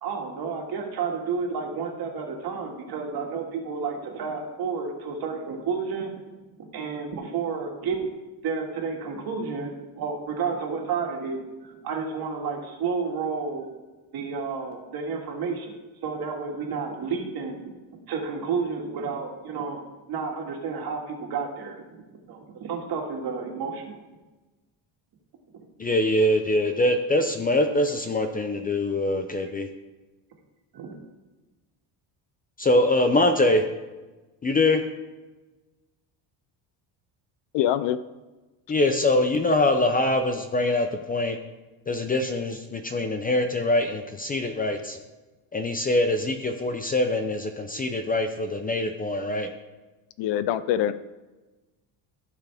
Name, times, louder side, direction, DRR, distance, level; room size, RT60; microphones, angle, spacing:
voice 1, 0.0-6.1 6.7-8.1 8.4-13.7 14.1-15.7 16.0-17.6 18.1-19.8 20.1-21.8 22.3-24.0 30.7-30.9, right 5 dB, 55° right, 1 dB, 2.0 m, -31 dB
voice 2, 25.8-29.7 32.6-33.6 34.4-34.8 38.7-41.4 41.9-45.0 45.5-49.5, left 1 dB, 20° left, 6 dB, 0.5 m, -23 dB
voice 3, 37.5-38.0 50.2-50.9, left 11 dB, 70° left, 14 dB, 0.6 m, -24 dB
15.0 x 5.8 x 3.5 m, 1.2 s
cardioid pair, 140°, 45 cm